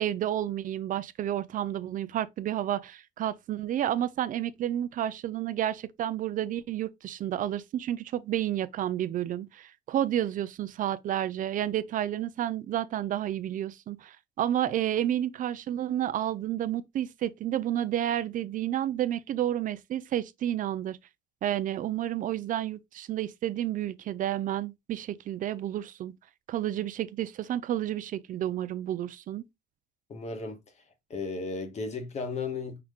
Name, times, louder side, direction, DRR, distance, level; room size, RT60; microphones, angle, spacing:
voice 1, 0.0-21.0 21.4-26.1 26.5-29.5, right 11 dB, 50° right, 0.4 m, -30 dB
voice 2, 30.1-30.6 31.1-32.8, left 4 dB, 40° left, 1.2 m, -34 dB
5.8 x 2.3 x 3.6 m
cardioid pair, 110°, 17 cm